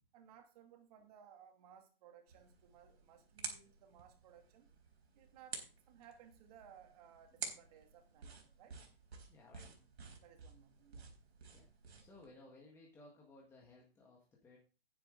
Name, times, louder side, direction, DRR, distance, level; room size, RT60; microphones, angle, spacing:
voice 1, 0.1-4.7 5.1-8.8 10.2-11.1, right 8 dB, 35° right, 5 dB, 2.4 m, -61 dB
sound 1, 2.3-12.3, right 5 dB, 85° right, 4.0 m, -51 dB
voice 2, 9.3-9.7 11.5-11.7 12.0-14.6, left 2 dB, 10° left, -2 dB, 1.6 m, -60 dB
10.0 x 9.6 x 3.8 m, 0.34 s
hypercardioid pair, 155°, 32 cm